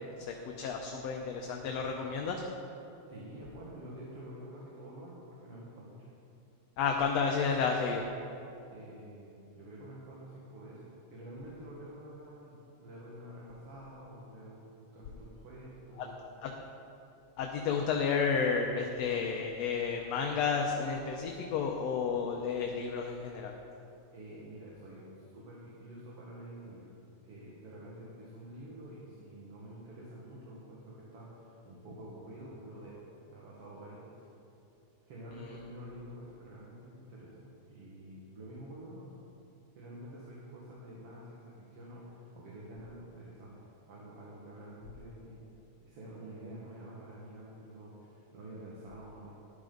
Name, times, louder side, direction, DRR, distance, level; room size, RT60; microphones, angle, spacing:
voice 1, 0.2-2.4 6.8-8.0 16.4-16.6 17.4-23.5, left 5 dB, 70° left, 1 dB, 1.8 m, -31 dB
voice 2, 3.1-6.1 8.7-16.2 24.1-26.9 27.2-33.0 33.3-34.2 35.1-39.2 39.8-43.6 43.9-45.4 45.8-49.3, right 1 dB, 55° right, -6 dB, 2.4 m, -48 dB
14.5 x 11.5 x 3.9 m, 2.8 s
omnidirectional pair, 3.4 m